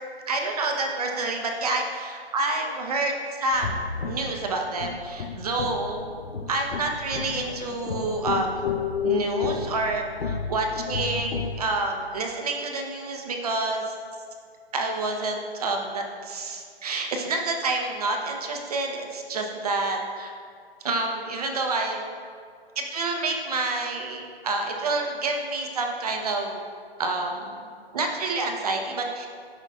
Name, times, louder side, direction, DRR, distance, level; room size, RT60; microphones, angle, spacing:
voice 1, 0.3-6.0 6.5-8.6 9.0-13.8 14.7-20.3 20.8-22.0 22.8-26.6 27.0-27.6 27.9-29.3, right 2 dB, 35° right, 2 dB, 1.0 m, -28 dB
sound 1, 3.5-11.6, left 6 dB, 70° left, 0.9 m, -32 dB
13.5 x 5.6 x 2.4 m, 2.1 s
hypercardioid pair, 165°, 32 cm